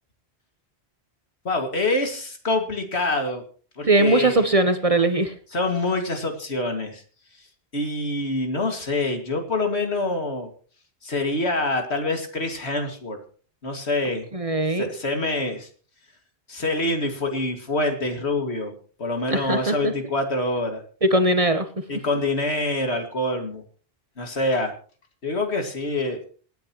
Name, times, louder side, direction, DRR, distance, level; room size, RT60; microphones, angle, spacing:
voice 1, 1.4-3.4 3.8-4.4 5.5-7.0 7.7-10.5 11.0-13.2 13.6-14.3 14.7-15.7 16.5-18.7 19.0-20.8 21.9-23.6 24.2-24.7 25.2-26.2, left 2 dB, 75° left, 4 dB, 2.5 m, -26 dB
voice 2, 3.9-5.3 14.3-14.9 19.3-19.9 21.0-21.7, right 2 dB, 35° right, 9 dB, 1.0 m, -20 dB
27.0 x 9.3 x 3.1 m, 0.41 s
omnidirectional pair, 1.1 m